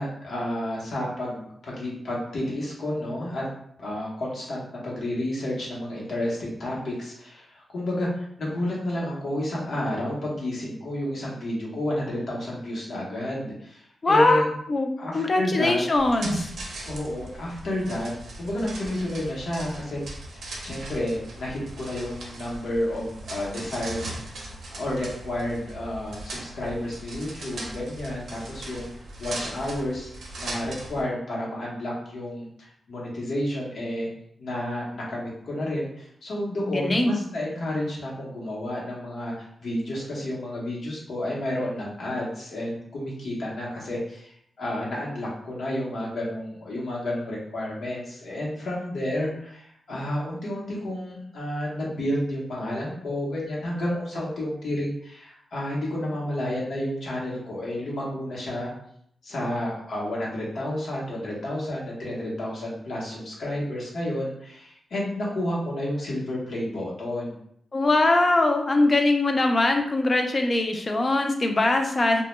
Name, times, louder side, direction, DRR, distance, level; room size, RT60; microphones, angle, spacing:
voice 1, 0.0-3.5 3.8-14.5 15.0-15.8 16.8-18.1 18.4-20.0 20.3-28.9 29.2-30.1 30.3-34.1 34.4-58.7 59.2-67.4, left 1 dB, 70° left, -4 dB, 0.8 m, -31 dB
voice 2, 14.0-14.4 14.7-14.9 15.1-16.5 36.6-37.2 67.7-72.2, left 2 dB, 35° left, 4 dB, 0.3 m, -22 dB
sound 1, 16.0-31.0, right 1 dB, 85° right, 0.5 m, -38 dB
2.1 x 2.0 x 3.0 m, 0.70 s
wide cardioid pair, 110°, 0 cm